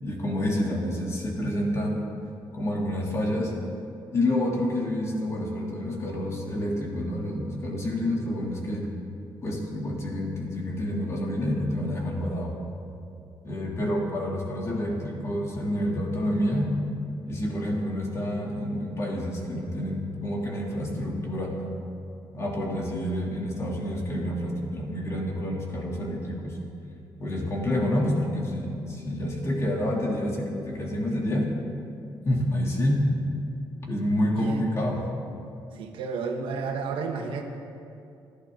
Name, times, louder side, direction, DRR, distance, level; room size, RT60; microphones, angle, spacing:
voice 1, 0.0-2.0 2.5-3.5 4.1-8.9 9.4-12.5 13.4-16.7 17.3-21.6 22.3-26.6 27.2-31.5 32.2-33.0 33.8-35.0, left 1 dB, 35° left, -2 dB, 3.1 m, -28 dB
voice 2, 35.7-37.4, right 5 dB, 85° right, 3 dB, 1.6 m, -31 dB
30.0 x 11.5 x 3.9 m, 2.6 s
cardioid pair, 150°, 9 cm